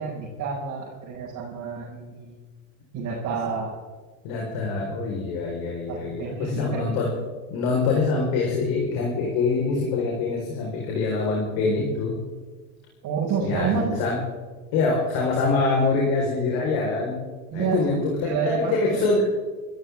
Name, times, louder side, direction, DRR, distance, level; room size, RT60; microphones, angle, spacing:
voice 1, 0.0-2.4 2.9-3.7 5.9-7.0 13.0-14.0 17.5-19.0, right 6 dB, 45° right, -5 dB, 5.6 m, -29 dB
voice 2, 4.2-7.1 7.5-12.2 13.4-14.2 14.7-17.2 17.5-19.2, left 3 dB, 55° left, -2 dB, 4.7 m, -25 dB
27.0 x 14.0 x 3.6 m, 1.4 s
hypercardioid pair, 95°, 42 cm